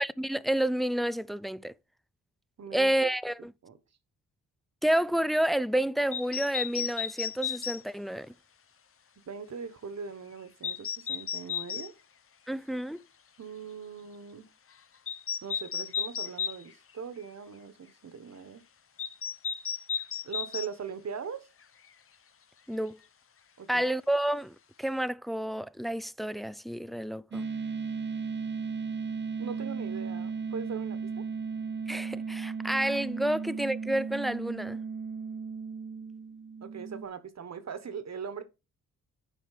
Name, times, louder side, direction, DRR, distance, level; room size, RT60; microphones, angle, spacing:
voice 1, 0.0-1.7 2.7-3.5 4.8-8.3 12.5-13.0 22.7-23.0 23.7-27.5 31.9-34.8, right 1 dB, ahead, 0.3 m, -29 dB
voice 2, 2.6-3.1 3.6-3.8 9.3-11.9 13.4-14.5 15.4-18.6 20.2-21.5 23.6-23.9 29.4-31.2 36.6-38.4, right 6 dB, 50° right, 1.3 m, -40 dB
sound 1, 6.1-7.8 10.6-11.9 15.1-16.6 19.0-20.7, left 7 dB, 40° left, 0.7 m, -33 dB
sound 2, 27.3-37.0, right 5 dB, 35° right, 0.6 m, -35 dB
9.2 x 5.1 x 4.9 m
cardioid pair, 70°, 34 cm